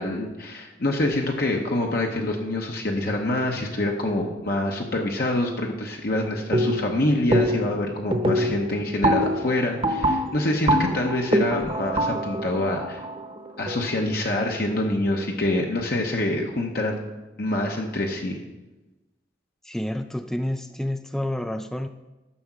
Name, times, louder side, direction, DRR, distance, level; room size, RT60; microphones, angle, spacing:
voice 1, 0.0-13.0 13.6-17.0 17.4-18.4, left 1 dB, 55° left, 1 dB, 1.0 m, -26 dB
sound 1, 6.5-7.0 7.3-7.8 8.1-13.9, equal, 30° right, 0.9 m, -24 dB
voice 2, 19.6-21.9, left 1 dB, 5° left, 9 dB, 0.3 m, -29 dB
11.5 x 6.7 x 6.1 m, 1.1 s
head